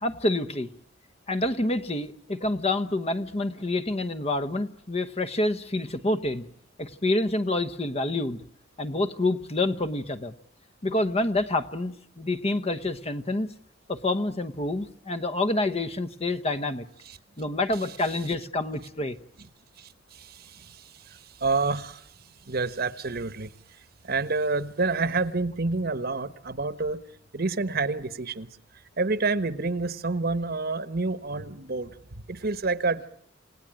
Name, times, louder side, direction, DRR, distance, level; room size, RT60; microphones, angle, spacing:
voice 1, 0.0-0.7 1.3-6.5 6.8-8.4 8.8-10.3 10.8-13.5 13.9-16.9 17.4-19.2, left 2 dB, 30° left, 12 dB, 1.0 m, -27 dB
voice 2, 19.8-22.1 22.5-23.5 24.0-27.0 27.3-28.5 29.0-32.0 32.3-33.1, right 3 dB, 55° right, 14 dB, 1.2 m, -28 dB
28.5 x 18.0 x 9.0 m, 0.68 s
head